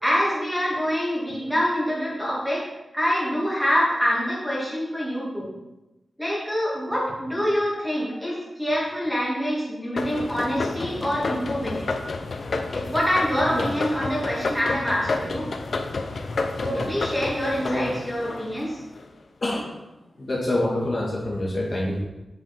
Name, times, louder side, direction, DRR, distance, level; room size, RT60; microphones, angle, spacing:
voice 1, 0.0-2.7 2.9-5.5 6.2-11.9 12.7-15.5 16.6-18.8, equal, ahead, -5 dB, 2.4 m, -25 dB
sound 1, 10.0-19.1, left 3 dB, 55° left, 0.6 m, -30 dB
voice 2, 19.4-19.8 20.2-22.0, left 1 dB, 40° left, -5 dB, 1.9 m, -26 dB
9.4 x 5.3 x 4.5 m, 1.0 s
wide cardioid pair, 155°, 0 cm